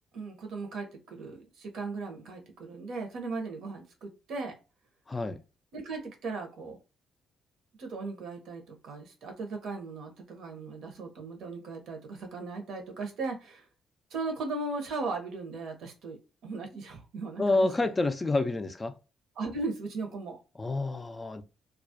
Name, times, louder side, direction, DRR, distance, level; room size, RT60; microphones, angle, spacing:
voice 1, 0.1-4.5 5.7-6.8 7.8-13.7 14.1-17.9 19.4-20.4, right 3 dB, 75° right, 0.8 m, -37 dB
voice 2, 5.1-5.4 17.4-19.0 20.6-21.4, left 2 dB, 25° left, 0.3 m, -28 dB
2.3 x 2.0 x 2.6 m
cardioid pair, 90°, 0 cm